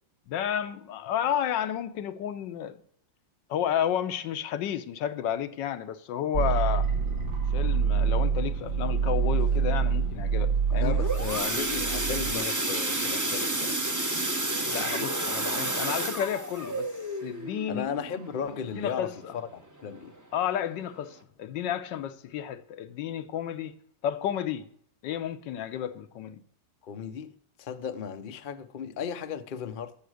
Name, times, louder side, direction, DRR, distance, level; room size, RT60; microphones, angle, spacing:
voice 1, 0.3-2.8 3.5-6.9 7.5-11.0 14.7-16.9 17.2-17.9 18.8-19.3 20.3-23.8 24.0-24.7 25.0-26.4, left 10 dB, 80° left, 1.4 m, -31 dB
sound 1, 6.3-12.3, right 6 dB, 65° right, 2.7 m, -26 dB
sound 2, 10.7-19.4 19.8-20.0 20.3-20.4 20.9-21.0, right 2 dB, 15° right, 0.6 m, -31 dB
voice 2, 10.8-13.8 17.7-20.2 26.8-29.9, left 7 dB, 55° left, 0.5 m, -35 dB
10.5 x 7.4 x 6.3 m
omnidirectional pair, 2.0 m